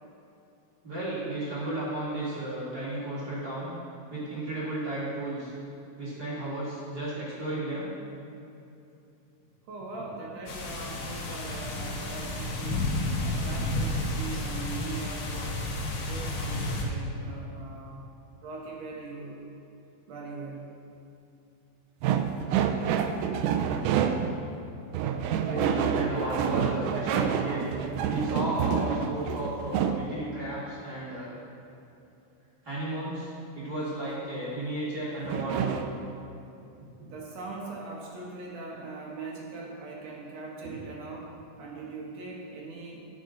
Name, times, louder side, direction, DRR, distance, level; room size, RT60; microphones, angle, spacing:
voice 1, 0.8-3.7 4.1-5.5 6.0-7.9 25.4-27.7 28.1-31.3 32.6-33.3 33.5-35.9, right 1 dB, 35° right, -9 dB, 1.9 m, -33 dB
voice 2, 9.7-12.9 13.2-15.7 16.0-18.0 18.4-19.4 20.1-20.7 37.1-43.1, right 3 dB, 65° right, -3 dB, 1.9 m, -41 dB
sound 1, 10.5-16.8, left 2 dB, 65° left, 2.1 m, -31 dB
sound 2, 22.0-24.4 24.9-30.0 35.3-35.9, right 8 dB, 85° right, 1.8 m, -28 dB
11.0 x 7.6 x 3.8 m, 2.8 s
omnidirectional pair, 4.1 m